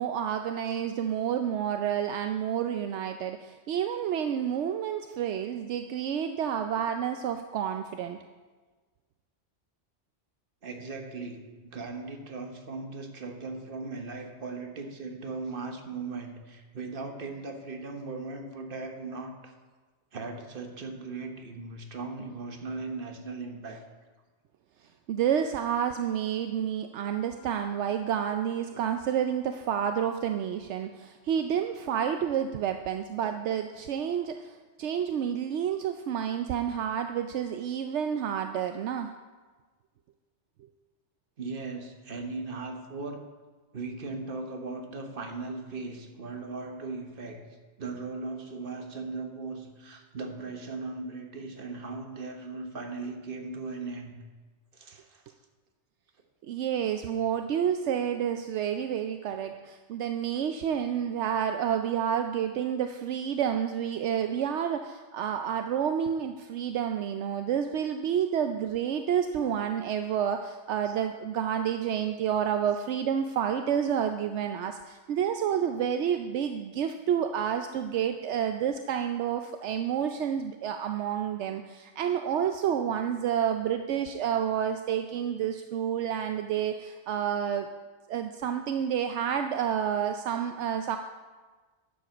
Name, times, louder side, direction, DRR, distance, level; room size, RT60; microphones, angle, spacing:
voice 1, 0.0-8.2 25.1-39.1 56.5-87.7 88.1-91.0, right 8 dB, 75° right, 6 dB, 0.9 m, -29 dB
voice 2, 10.6-19.5 20.1-23.9 28.7-28.8 33.2-33.3 41.4-43.3 43.7-47.4 47.8-54.1 54.7-55.2 70.8-71.0, right 3 dB, 50° right, 4 dB, 1.3 m, -38 dB
11.0 x 7.5 x 6.0 m, 1.3 s
omnidirectional pair, 1.2 m